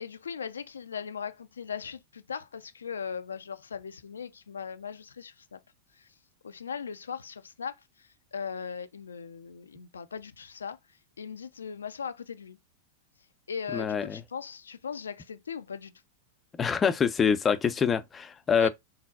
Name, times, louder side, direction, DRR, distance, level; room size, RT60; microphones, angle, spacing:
voice 1, 0.0-5.6 6.0-6.1 6.4-10.8 11.2-12.6 13.5-15.9 18.5-18.7, left 6 dB, 75° left, 0.4 m, -39 dB
voice 2, 13.7-14.2 16.6-18.7, left 6 dB, 20° left, 0.5 m, -25 dB
3.9 x 3.9 x 2.3 m
figure-of-eight pair, 95°, 0 cm